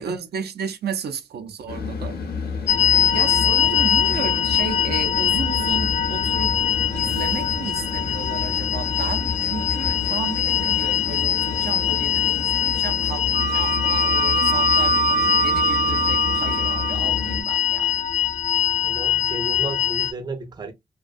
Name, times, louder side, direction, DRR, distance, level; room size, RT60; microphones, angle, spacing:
voice 1, 0.0-2.2 2.9-6.7 6.9-18.0, right 6 dB, 80° right, 0.4 m, -33 dB
sound 1, 1.7-17.4, left 5 dB, 70° left, 0.8 m, -31 dB
sound 2, 2.7-20.1, left 10 dB, 45° left, 0.4 m, -23 dB
Wind instrument woodwind instrument, 13.3-17.0, right 6 dB, 50° right, 0.7 m, -24 dB
voice 2, 18.8-20.7, right 2 dB, 25° right, 0.4 m, -33 dB
2.5 x 2.2 x 2.3 m
wide cardioid pair, 125°, 17 cm